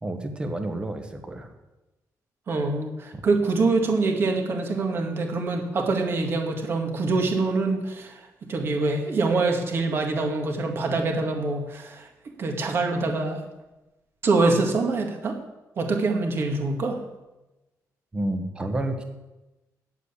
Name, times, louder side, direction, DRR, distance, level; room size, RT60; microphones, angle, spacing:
voice 1, 0.0-1.5 3.1-3.2 18.1-19.0, right 1 dB, 15° right, 5 dB, 1.2 m, -30 dB
voice 2, 2.5-12.1 12.4-13.4 14.2-15.4 15.8-17.0, right 3 dB, 40° right, 2 dB, 1.9 m, -25 dB
9.8 x 8.1 x 8.3 m, 1.0 s
cardioid pair, 180°, 6 cm